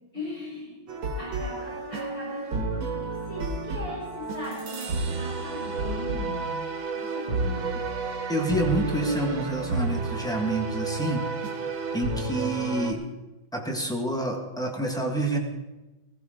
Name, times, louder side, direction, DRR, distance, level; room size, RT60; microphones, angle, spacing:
voice 1, 0.1-0.9 1.2-6.6 6.9-7.7, left 1 dB, 30° left, -9 dB, 5.8 m, -39 dB
sound 1, 0.9-12.9, right 3 dB, 85° right, 2.2 m, -31 dB
voice 2, 8.3-11.2 11.9-13.0 13.5-15.4, right 1 dB, ahead, 1 dB, 1.5 m, -28 dB
16.5 x 15.5 x 3.9 m, 1.1 s
omnidirectional pair, 2.1 m